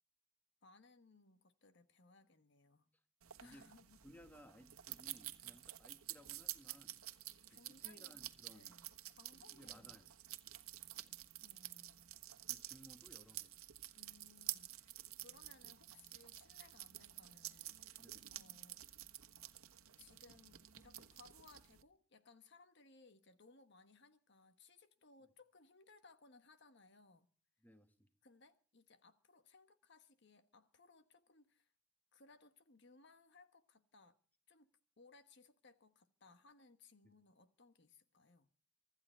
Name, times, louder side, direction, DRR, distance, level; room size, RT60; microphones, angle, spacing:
voice 1, 0.6-2.9 3.4-4.0 5.4-5.6 7.5-8.2 8.5-8.9 9.2-10.0 11.4-12.0 14.0-14.9 15.2-18.9 20.0-27.3 28.2-31.7 32.1-34.2 34.5-34.7 35.0-38.5, left 3 dB, 55° left, 1.3 m, -65 dB
sound 1, 3.2-21.8, right 14 dB, 85° right, 1.4 m, -50 dB
voice 2, 4.0-7.0 7.5-8.8 9.5-10.1 12.4-13.5 18.0-18.2 27.6-28.1 37.0-37.1, equal, 10° left, 1.7 m, -61 dB
24.5 x 13.0 x 4.4 m
head